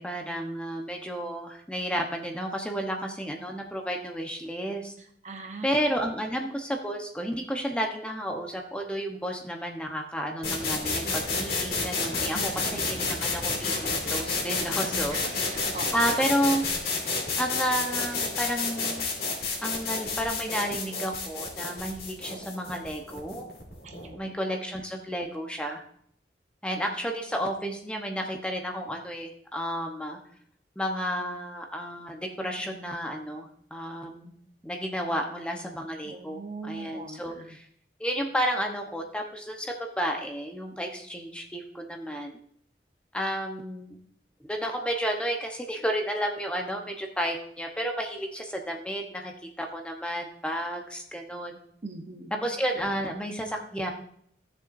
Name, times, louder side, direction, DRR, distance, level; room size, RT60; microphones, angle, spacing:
voice 1, 0.0-4.9 5.6-15.5 15.9-16.6 17.4-19.1 19.6-23.5 24.2-25.8 26.6-30.2 30.8-34.3 34.6-37.7 38.0-42.4 43.1-44.0 44.4-51.6 52.4-53.9, equal, 5° left, 2 dB, 0.9 m, -31 dB
voice 2, 5.2-5.7 12.3-13.0 15.1-15.9 23.8-24.2 36.1-37.5 51.8-52.3, right 3 dB, 40° right, 4 dB, 0.9 m, -41 dB
sound 1, 10.4-24.1, left 3 dB, 55° left, 2.5 m, -30 dB
15.5 x 7.0 x 2.6 m, 0.65 s
head